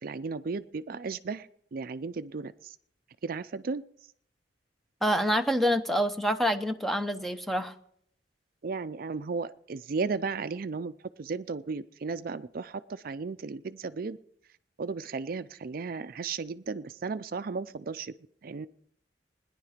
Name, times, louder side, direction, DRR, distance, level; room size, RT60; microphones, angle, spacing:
voice 1, 0.0-2.8 3.2-3.8 8.6-10.9 11.2-14.2 14.8-18.1 18.4-18.7, right 4 dB, 55° right, 13 dB, 0.5 m, -35 dB
voice 2, 5.0-7.7, equal, ahead, 8 dB, 0.8 m, -27 dB
18.5 x 10.5 x 5.1 m, 0.67 s
head